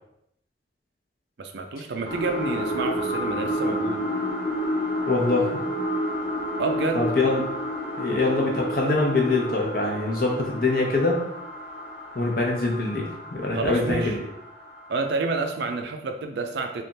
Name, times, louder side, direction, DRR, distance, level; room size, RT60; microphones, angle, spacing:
voice 1, 1.4-4.1 6.6-7.0 13.5-14.2 14.9-16.8, right 3 dB, 70° right, 5 dB, 0.4 m, -29 dB
sound 1, 2.0-15.2 15.7-15.8, equal, 35° left, 1.2 m, -30 dB
voice 2, 5.1-5.6 6.9-7.4 8.0-11.2 12.1-14.2, left 3 dB, 50° left, 0 dB, 0.8 m, -24 dB
3.3 x 2.4 x 4.0 m, 0.78 s
head